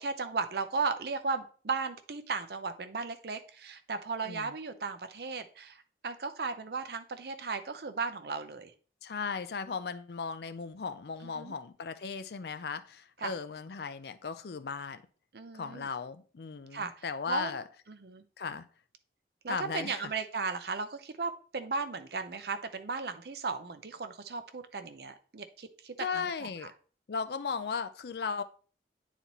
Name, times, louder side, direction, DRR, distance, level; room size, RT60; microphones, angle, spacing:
voice 1, 0.0-8.7 11.2-11.6 13.2-13.3 15.3-15.9 16.7-17.5 17.9-18.2 19.4-26.7, right 4 dB, 60° right, 9 dB, 0.6 m, -36 dB
voice 2, 4.2-4.5 9.0-15.0 15.5-17.6 18.4-18.7 19.5-20.1 26.0-26.7 27.1-28.4, left 5 dB, 65° left, 11 dB, 0.5 m, -36 dB
9.2 x 4.1 x 3.0 m, 0.40 s
head